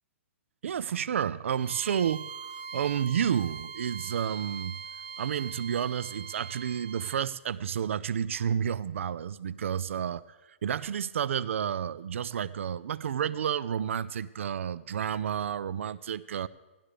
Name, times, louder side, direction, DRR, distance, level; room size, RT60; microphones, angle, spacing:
voice 1, 0.6-2.3 2.7-4.8 5.2-10.2 10.6-16.5, right 8 dB, 75° right, 17 dB, 0.4 m, -30 dB
Bowed string instrument, 1.5-7.2, right 6 dB, 45° right, 0.8 m, -42 dB
16.5 x 12.0 x 3.3 m, 1.1 s
hypercardioid pair, 150°, 7 cm